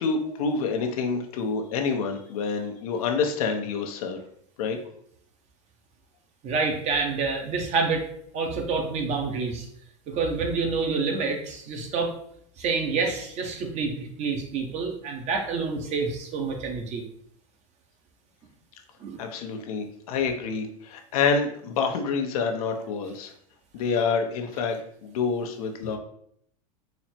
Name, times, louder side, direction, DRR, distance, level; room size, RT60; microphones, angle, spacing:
voice 1, 0.0-4.2 4.6-4.8 19.2-23.3 23.7-24.8 25.0-26.0, left 5 dB, 80° left, 4 dB, 0.7 m, -27 dB
voice 2, 6.4-9.7 10.1-12.1 12.6-17.0 19.0-19.2, right 4 dB, 40° right, 3 dB, 0.9 m, -28 dB
4.1 x 2.0 x 4.3 m, 0.66 s
supercardioid pair, 125°, 18 cm